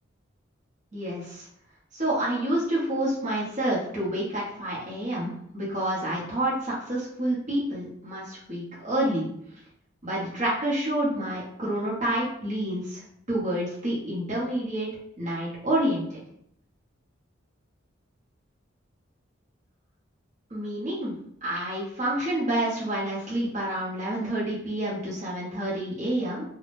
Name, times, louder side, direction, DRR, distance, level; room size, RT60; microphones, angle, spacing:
voice 1, 0.9-1.5 1.9-9.3 10.0-13.0 13.3-14.9 15.2-16.2 20.5-21.1 21.4-26.4, right 1 dB, 40° right, -7 dB, 0.9 m, -28 dB
3.4 x 2.2 x 2.5 m, 0.69 s
head